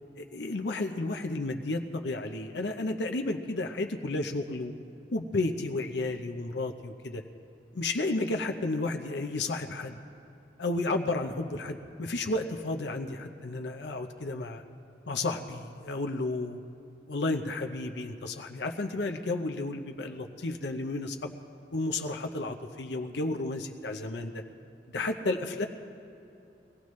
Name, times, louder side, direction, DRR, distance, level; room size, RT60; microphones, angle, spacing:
voice 1, 0.3-4.7 5.1-7.2 7.7-10.0 10.6-14.6 15.1-16.6 17.1-21.3 21.7-24.4 24.9-25.7, left 2 dB, 75° left, 5 dB, 0.7 m, -32 dB
22.0 x 16.5 x 3.2 m, 2.7 s
head